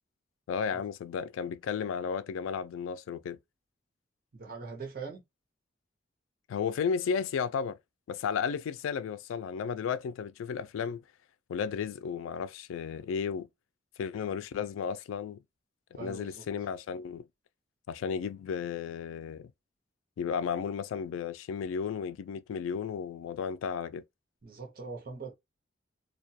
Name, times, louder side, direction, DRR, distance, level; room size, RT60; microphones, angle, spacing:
voice 1, 0.5-3.4 6.5-7.8 8.1-11.0 11.5-13.5 14.0-15.4 16.0-17.3 17.9-19.5 20.2-24.0, left 6 dB, 90° left, 0.3 m, -33 dB
voice 2, 4.3-5.2 15.9-16.5 24.4-25.3, right 4 dB, 50° right, 0.7 m, -42 dB
2.2 x 2.1 x 2.7 m
head